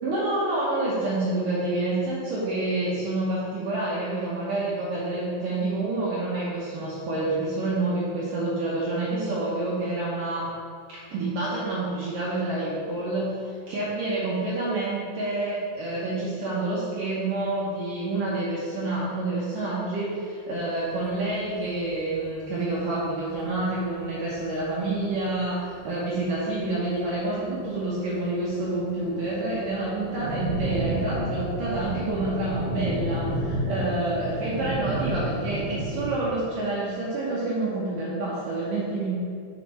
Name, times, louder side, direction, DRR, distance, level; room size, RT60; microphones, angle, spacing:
voice 1, 0.0-10.5 10.9-39.1, right 2 dB, 80° right, -8 dB, 1.9 m, -28 dB
sound 1, 20.8-20.9 21.1-21.2 21.5-21.9 22.2-22.3 22.4-22.8 23.4-23.5 24.0-24.1 24.4-24.6 25.2-25.6 26.0-26.5 26.8-27.7 28.0-36.1, right 1 dB, 60° right, 2.1 m, -31 dB
6.2 x 5.8 x 5.5 m, 2.3 s
omnidirectional pair, 5.8 m